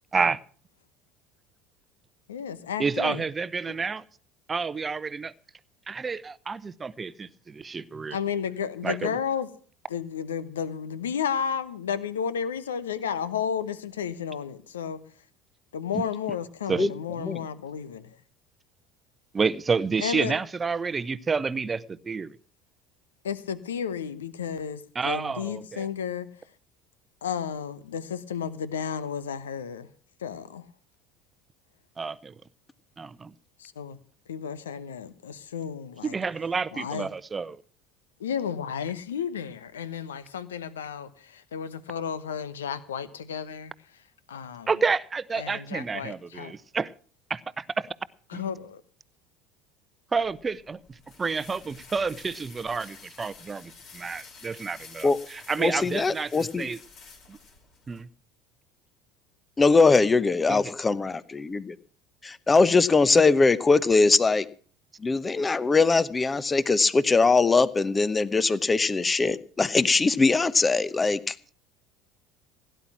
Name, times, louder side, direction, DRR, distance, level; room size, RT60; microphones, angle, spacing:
voice 1, 2.3-3.2 3.7-3.8 8.1-9.5 9.9-15.0 15.7-18.2 20.0-20.4 23.2-26.3 27.2-29.9 30.2-30.6 33.6-34.0 34.3-36.1 36.7-37.1 38.2-43.7 44.3-44.7 45.4-46.5 48.3-48.8, left 7 dB, 75° left, 1.0 m, -32 dB
voice 2, 2.8-4.0 4.5-5.3 5.9-8.2 8.8-9.2 15.9-16.0 16.7-16.9 19.3-22.4 24.9-25.9 32.0-32.4 33.0-33.3 36.0-37.6 44.7-46.9 47.3-47.9 48.3-48.4 50.1-56.8 57.3-57.4 57.9-58.1 60.5-60.7, right 5 dB, 25° right, 0.8 m, -29 dB
sound 1, 50.2-58.0, left 4 dB, 50° left, 4.1 m, -50 dB
voice 3, 55.6-56.7 59.6-61.8 62.2-64.5 65.0-71.3, left 4 dB, 20° left, 0.9 m, -21 dB
17.0 x 10.5 x 5.9 m
figure-of-eight pair, 65°, 0 cm